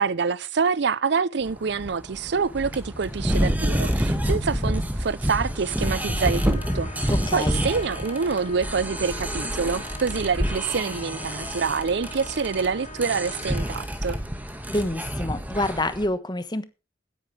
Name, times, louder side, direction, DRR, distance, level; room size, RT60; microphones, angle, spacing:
voice 1, 0.0-14.2, right 5 dB, 60° right, 0.5 m, -26 dB
sound 1, 1.5-16.1, equal, 10° right, 2.1 m, -28 dB
Trumpet, 5.7-13.9, left 2 dB, 40° left, 2.1 m, -43 dB
voice 2, 7.1-7.6 14.7-16.6, left 1 dB, 25° left, 1.3 m, -27 dB
17.0 x 9.8 x 3.3 m
head